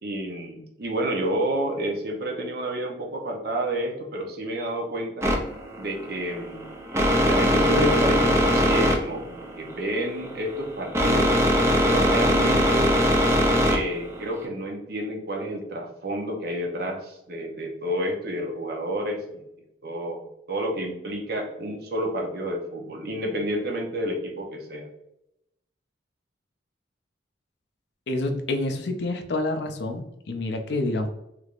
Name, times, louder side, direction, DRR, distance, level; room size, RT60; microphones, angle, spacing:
voice 1, 0.0-5.3 5.8-6.7 7.2-11.4 11.8-12.9 13.6-19.4 19.8-24.9, right 1 dB, 55° right, 1 dB, 0.7 m, -30 dB
sound 1, 5.2-14.5, equal, 15° right, 0.4 m, -22 dB
voice 2, 28.1-31.1, left 2 dB, 60° left, 6 dB, 0.5 m, -28 dB
3.4 x 3.3 x 2.4 m, 0.85 s
head